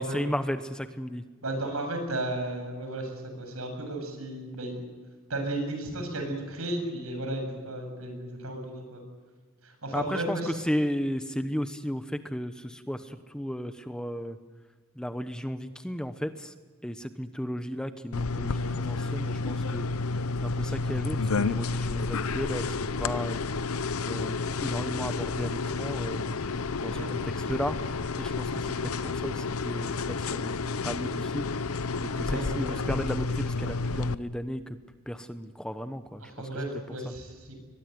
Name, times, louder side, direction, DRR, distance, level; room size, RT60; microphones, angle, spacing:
voice 1, 0.0-1.2 9.9-14.4 15.0-16.5 16.8-19.9 20.4-23.4 24.1-27.8 28.2-31.5 32.0-34.6 35.1-36.2, equal, 5° left, 9 dB, 1.0 m, -34 dB
voice 2, 1.4-4.8 5.3-9.0 9.6-10.6 26.8-27.1 32.1-32.8 36.2-37.6, right 1 dB, 80° right, 5 dB, 7.8 m, -34 dB
sound 1, 18.1-34.1, left 4 dB, 85° left, 0.8 m, -30 dB
22.5 x 22.0 x 9.4 m, 1.5 s
head